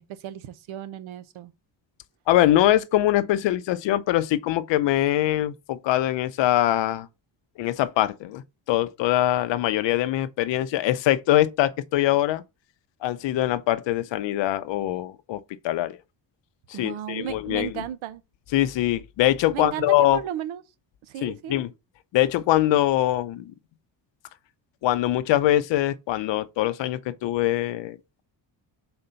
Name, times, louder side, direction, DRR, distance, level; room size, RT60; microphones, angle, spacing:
voice 1, 0.0-1.5 16.7-18.2 19.5-19.9 20.1-20.6 21.1-21.6, right 12 dB, 85° right, 0.9 m, -34 dB
voice 2, 2.3-7.1 7.6-12.4 13.0-16.0 16.7-17.8 18.5-20.2 21.2-21.7 22.1-23.5 24.8-28.2, left 14 dB, 70° left, 0.7 m, -23 dB
4.3 x 4.0 x 5.6 m
cardioid pair, 160°, 46 cm